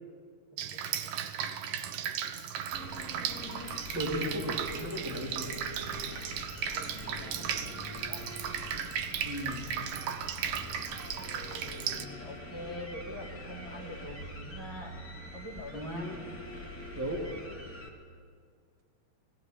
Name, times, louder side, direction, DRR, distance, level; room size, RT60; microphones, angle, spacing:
voice 1, 0.5-1.1 6.7-8.3 11.4-15.0 15.3-16.1, left 1 dB, 35° right, -2 dB, 2.5 m, -45 dB
Drip, 0.6-12.1, right 9 dB, 75° right, 2.0 m, -36 dB
sound 1, 2.7-17.9, left 1 dB, 10° left, 0.6 m, -44 dB
voice 2, 3.9-5.5 9.2-9.7 15.7-16.2 16.9-17.2, equal, 5° right, 0 dB, 1.2 m, -35 dB
19.0 x 16.5 x 8.9 m, 2.1 s
omnidirectional pair, 4.9 m